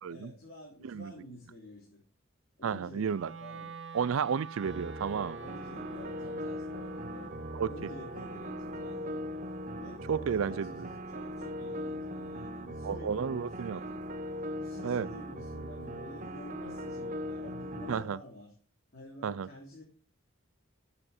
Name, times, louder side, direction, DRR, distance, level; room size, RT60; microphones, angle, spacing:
voice 1, 0.1-2.0 2.6-3.7 5.3-7.4 7.6-9.2 9.7-14.0 14.6-18.5 18.9-19.8, left 1 dB, 50° left, 3.3 m, -49 dB
voice 2, 2.6-3.3 3.9-5.4 7.5-7.7 10.1-10.9 12.8-13.8 14.8-15.1 17.9-18.2 19.2-19.5, right 6 dB, 75° right, 0.4 m, -32 dB
Wind instrument woodwind instrument, 3.1-13.3, right 4 dB, 55° right, 1.2 m, -50 dB
sound 1, 4.6-18.0, equal, 35° right, 0.8 m, -40 dB
11.0 x 7.8 x 4.4 m
head